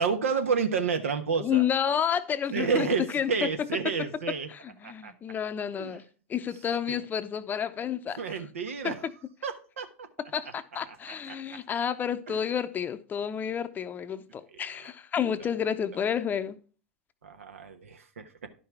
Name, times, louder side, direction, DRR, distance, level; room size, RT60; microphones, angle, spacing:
voice 1, 0.0-1.6 2.5-4.5 4.8-5.1 5.7-6.0 6.9-7.0 8.2-9.1 9.4-10.1 11.3-11.4 12.3-12.4 17.2-18.5, right 5 dB, 80° right, 1.2 m, -30 dB
voice 2, 1.4-3.7 4.5-6.0 6.3-8.4 8.8-9.1 10.3-16.6, left 8 dB, 25° left, 0.7 m, -30 dB
11.0 x 5.7 x 4.6 m
hypercardioid pair, 100°, 7 cm